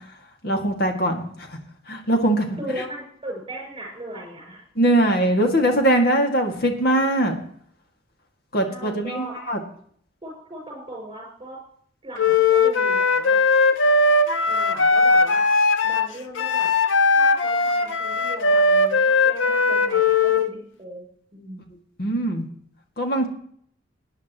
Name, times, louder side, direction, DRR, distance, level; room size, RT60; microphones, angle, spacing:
voice 1, 0.4-1.2 1.9-2.5 4.8-7.4 8.5-9.6 22.0-22.4 23.0-23.3, right 1 dB, 55° left, 3 dB, 2.2 m, -21 dB
voice 2, 2.6-4.6 8.6-9.4 10.2-11.6 12.0-13.4 14.4-15.5 15.8-16.7 17.1-21.0 21.3-21.7, right 1 dB, 25° right, 1 dB, 6.4 m, -37 dB
Wind instrument woodwind instrument, 12.2-20.5, left 3 dB, 80° left, 0.8 m, -19 dB
18.5 x 10.5 x 3.1 m, 0.62 s
head